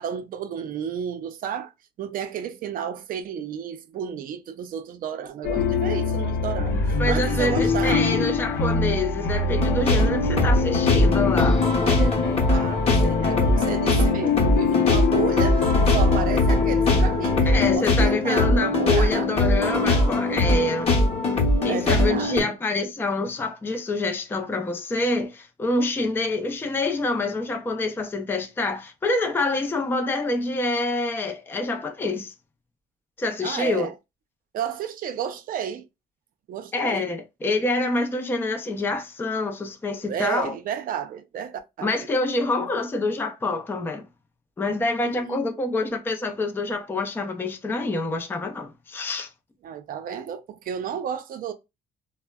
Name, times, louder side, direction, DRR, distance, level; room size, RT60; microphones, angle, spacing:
voice 1, 0.0-1.7 2.0-8.3 11.8-19.3 21.7-22.6 33.4-33.9 34.5-35.9 36.5-37.1 40.1-42.1 45.0-45.4 49.6-51.5, right 8 dB, 55° right, 0.5 m, -32 dB
sound 1, 5.4-17.8, left 4 dB, 70° left, 0.6 m, -24 dB
voice 2, 7.0-11.7 17.5-20.9 21.6-32.3 33.2-33.9 36.7-40.5 41.8-44.1 44.6-49.3, left 2 dB, 15° left, 0.4 m, -26 dB
sound 2, 9.6-22.4, left 2 dB, 35° left, 0.9 m, -21 dB
3.2 x 2.1 x 2.2 m
cardioid pair, 110°, 17 cm